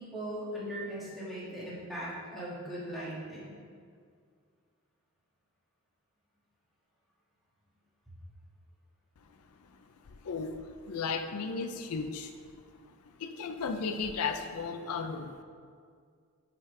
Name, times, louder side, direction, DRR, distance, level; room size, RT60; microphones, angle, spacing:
voice 1, 0.0-3.5, equal, ahead, -9 dB, 1.8 m, -39 dB
voice 2, 10.2-10.6 10.9-12.3 13.2-15.4, left 5 dB, 85° left, 6 dB, 0.5 m, -34 dB
9.9 x 5.2 x 3.2 m, 2.1 s
head